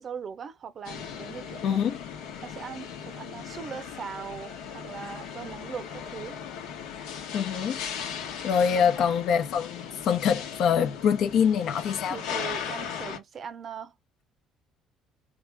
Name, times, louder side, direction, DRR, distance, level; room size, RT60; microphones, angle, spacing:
voice 1, 0.0-1.8 2.4-6.4 8.7-9.1 12.1-13.9, right 7 dB, 45° right, 0.6 m, -40 dB
sound 1, 0.8-13.2, left 7 dB, 85° left, 1.0 m, -38 dB
voice 2, 1.6-2.0 7.3-7.8 8.4-12.2, left 7 dB, 65° left, 0.7 m, -24 dB
3.7 x 2.4 x 3.4 m
cardioid pair, 95°, 0 cm